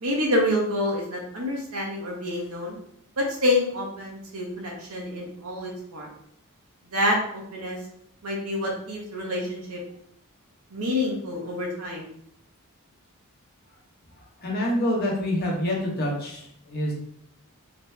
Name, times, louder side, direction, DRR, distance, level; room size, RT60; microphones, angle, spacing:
voice 1, 0.0-2.8 3.2-6.1 6.9-7.8 8.2-9.8 10.7-12.1, left 1 dB, 75° right, -2 dB, 1.1 m, -27 dB
voice 2, 14.4-16.9, left 1 dB, 45° left, -3 dB, 1.1 m, -26 dB
3.2 x 3.0 x 3.2 m, 0.70 s
head